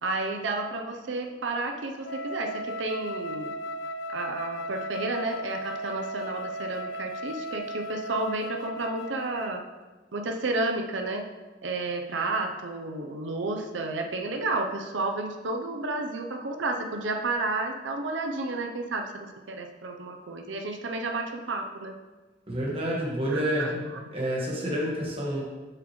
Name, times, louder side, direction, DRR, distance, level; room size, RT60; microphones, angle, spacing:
voice 1, 0.0-3.6 4.1-9.6 10.1-11.2 11.6-19.1 19.5-21.9 23.3-23.8, right 2 dB, 90° right, 4 dB, 0.7 m, -31 dB
Wind instrument woodwind instrument, 2.0-9.7, right 1 dB, 80° left, 0.3 m, -36 dB
voice 2, 22.5-23.7 24.1-25.4, equal, 30° right, -4 dB, 1.6 m, -28 dB
7.6 x 6.2 x 3.1 m, 1.2 s
head